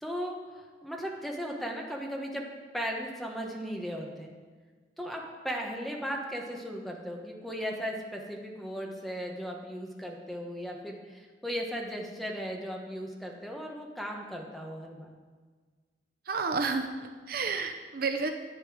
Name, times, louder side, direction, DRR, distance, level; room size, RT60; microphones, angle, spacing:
voice 1, 0.0-2.4 2.7-4.3 5.0-15.1, equal, ahead, 0 dB, 1.2 m, -37 dB
voice 2, 16.3-18.3, right 4 dB, 55° right, 6 dB, 0.7 m, -31 dB
10.5 x 7.9 x 5.0 m, 1.5 s
head